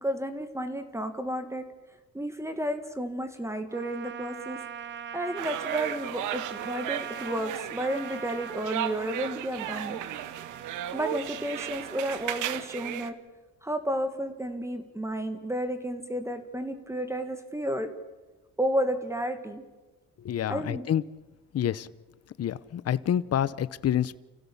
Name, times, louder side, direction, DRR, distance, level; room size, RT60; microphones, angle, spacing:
voice 1, 0.0-1.6 2.1-4.6 5.1-10.0 10.9-13.1 13.6-17.9 18.6-19.6 20.5-20.8, right 1 dB, 10° right, 1.9 m, -32 dB
Trumpet, 3.7-12.4, right 8 dB, 40° right, 0.7 m, -42 dB
sound 1, 5.4-13.1, right 11 dB, 90° right, 1.2 m, -35 dB
voice 2, 20.2-21.0 21.5-21.9 22.4-24.2, left 10 dB, 55° left, 0.9 m, -27 dB
30.0 x 16.0 x 7.2 m
cardioid pair, 90°, 30 cm